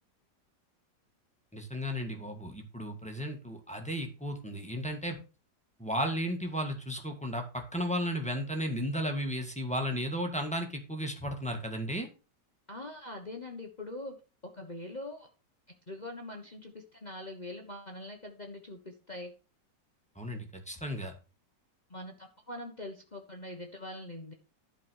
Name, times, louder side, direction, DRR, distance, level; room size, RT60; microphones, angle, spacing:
voice 1, 1.5-5.2 5.8-12.1 20.1-21.1, equal, 5° left, 3 dB, 1.8 m, -34 dB
voice 2, 12.7-14.1 14.5-15.3 15.9-19.3 21.9-24.3, left 1 dB, 25° left, 2 dB, 1.3 m, -43 dB
11.5 x 5.0 x 6.3 m, 0.33 s
omnidirectional pair, 1.9 m